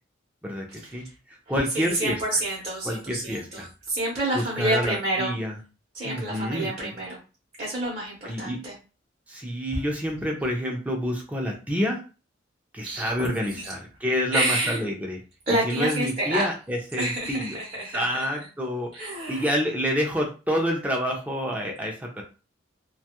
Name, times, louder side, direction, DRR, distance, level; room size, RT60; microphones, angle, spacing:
voice 1, 0.4-1.0 1.5-2.2 2.8-3.7 4.3-5.6 6.0-6.9 8.2-8.6 9.3-12.0 12.7-15.2 15.6-17.6 17.9-22.2, equal, 10° right, 0 dB, 0.5 m, -28 dB
voice 2, 1.7-5.4 5.9-7.2 7.6-8.7 12.8-13.7 14.3-14.8 15.5-16.5 17.0-18.3 19.0-19.5, right 1 dB, 35° right, -6 dB, 0.8 m, -28 dB
2.5 x 2.3 x 2.8 m, 0.33 s
head